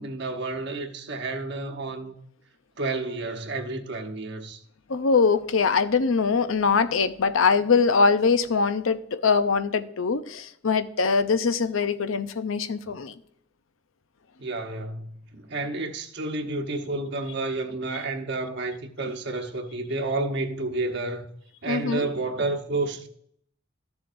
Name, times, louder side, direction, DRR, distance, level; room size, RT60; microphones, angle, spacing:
voice 1, 0.0-2.2 2.8-4.6 14.4-21.3 21.6-23.1, right 2 dB, 60° right, 1.1 m, -30 dB
voice 2, 4.9-13.1 21.7-22.1, left 5 dB, 90° left, 0.7 m, -22 dB
13.5 x 7.0 x 2.6 m
head